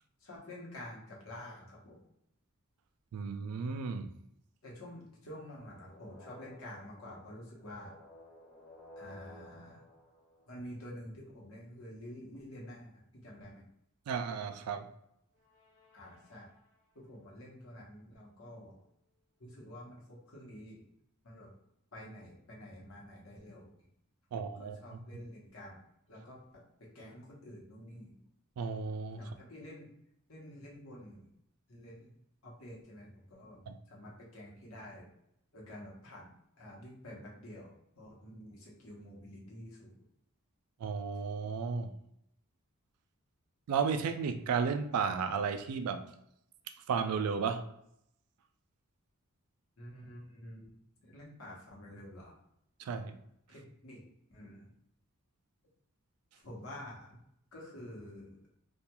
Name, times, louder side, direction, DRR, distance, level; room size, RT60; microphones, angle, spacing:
voice 1, 0.2-2.0 4.6-7.9 9.0-9.8 10.5-13.7 15.9-16.5 16.9-18.8 19.4-20.8 21.2-21.5 21.9-23.7 24.3-25.8 26.1-28.2 29.2-29.9 30.3-31.3 31.7-32.1 32.4-33.6 33.9-35.1 35.5-39.9 49.8-50.7 51.0-52.4 53.5-54.0 54.3-54.7 56.4-57.2 57.5-58.4, left 1 dB, 65° left, -3 dB, 0.9 m, -49 dB
voice 2, 3.1-4.1 14.1-14.9 24.3-25.0 28.6-29.2 33.7-33.8 40.8-41.9 43.7-46.0 46.9-47.6 52.8-53.2, right 6 dB, 85° right, 8 dB, 0.3 m, -33 dB
sound 1, 5.7-11.0 15.3-17.0, left 2 dB, 40° left, 1.2 m, -56 dB
2.3 x 2.3 x 2.9 m, 0.75 s
head